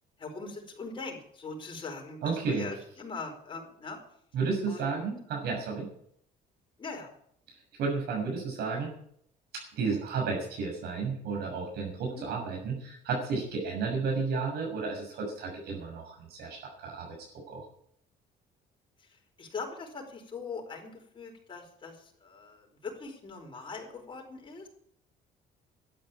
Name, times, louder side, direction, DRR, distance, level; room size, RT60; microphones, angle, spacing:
voice 1, 0.2-4.0 4.7-5.1 6.8-7.1 12.1-12.3 19.0-24.7, left 4 dB, 30° left, 1 dB, 4.9 m, -41 dB
voice 2, 2.2-2.7 4.3-5.9 7.8-8.9 9.8-17.1 17.5-17.6, right 4 dB, 75° right, 1 dB, 6.8 m, -32 dB
12.5 x 9.5 x 9.1 m, 0.67 s
cardioid pair, 110°, 17 cm